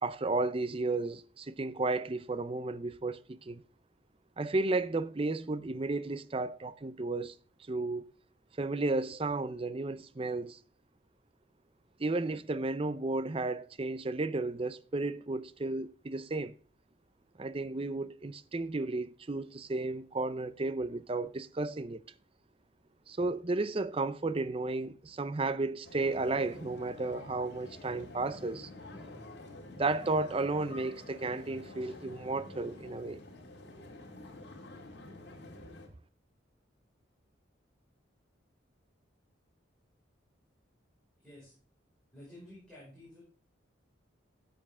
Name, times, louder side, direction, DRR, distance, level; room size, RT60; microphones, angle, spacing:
voice 1, 0.0-3.6 4.4-7.4 7.7-8.1 8.6-10.6 12.0-16.5 17.4-22.0 23.1-28.7 29.8-33.2, right 3 dB, 30° right, 0.5 m, -33 dB
sound 1, 25.8-35.9, left 2 dB, 55° left, 2.2 m, -49 dB
voice 2, 41.2-41.6 42.1-43.2, left 1 dB, 5° left, 5.3 m, -52 dB
13.5 x 7.8 x 3.6 m
head